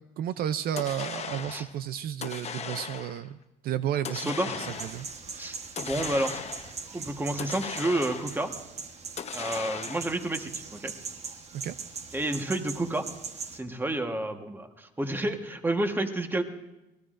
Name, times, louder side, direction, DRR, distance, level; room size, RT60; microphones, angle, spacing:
voice 1, 0.2-3.4 3.6-5.1 5.4-5.5 11.5-11.8, right 10 dB, 60° right, 12 dB, 0.5 m, -32 dB
sound 1, 0.8-1.7 2.2-3.3 4.0-5.1 5.8-6.8 7.4-8.5 9.2-10.3, left 7 dB, 40° left, 0.9 m, -37 dB
voice 2, 4.1-4.6 5.4-6.4 6.9-8.5 9.3-10.9 12.1-13.1 13.5-16.4, right 1 dB, 10° right, 5 dB, 1.3 m, -30 dB
sound 2, 4.7-13.6, right 5 dB, 40° right, 1.2 m, -41 dB
26.5 x 19.0 x 2.5 m, 0.98 s
cardioid pair, 110°, 17 cm